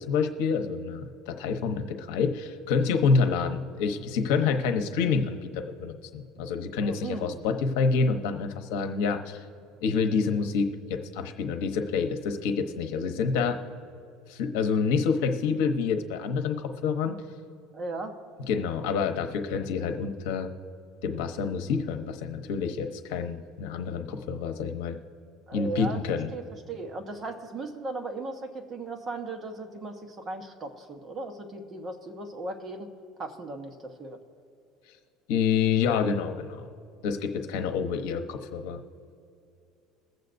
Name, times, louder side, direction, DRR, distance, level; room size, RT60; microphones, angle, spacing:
voice 1, 0.1-9.4 9.8-13.6 14.3-17.2 18.5-20.5 21.0-25.0 25.5-26.3 35.3-36.6 37.0-38.8, left 5 dB, 80° left, 6 dB, 0.9 m, -27 dB
voice 2, 6.8-7.3 17.7-18.2 25.5-26.0 26.3-32.9 33.2-34.2, right 2 dB, 25° right, 5 dB, 1.0 m, -37 dB
21.5 x 7.8 x 2.6 m, 2.5 s
cardioid pair, 140°, 0 cm